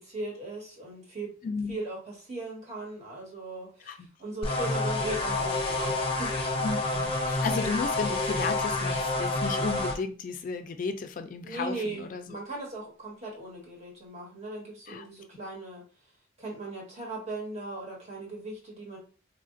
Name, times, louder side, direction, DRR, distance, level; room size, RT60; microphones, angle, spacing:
voice 1, 0.0-1.3 1.7-6.4 11.4-15.8 16.4-19.0, right 2 dB, 40° right, -3 dB, 1.5 m, -38 dB
voice 2, 1.4-1.8 3.8-4.1 6.6-12.4 14.9-15.1, left 4 dB, 50° left, 8 dB, 0.3 m, -33 dB
sound 1, 4.4-9.9, left 2 dB, 30° left, 0.7 m, -28 dB
3.4 x 2.4 x 2.5 m, 0.36 s
head